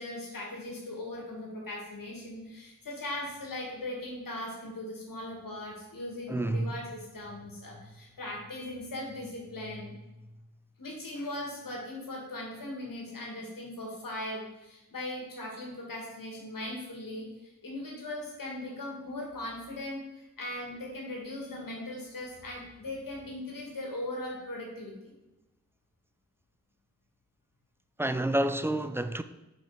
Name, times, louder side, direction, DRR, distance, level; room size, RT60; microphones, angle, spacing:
voice 1, 0.0-10.0 10.8-25.1, left 1 dB, 85° left, 2.1 m, -39 dB
voice 2, 6.3-6.7 28.0-29.2, right 1 dB, 10° right, 0.3 m, -28 dB
5.7 x 5.5 x 5.1 m
wide cardioid pair, 105°, 33 cm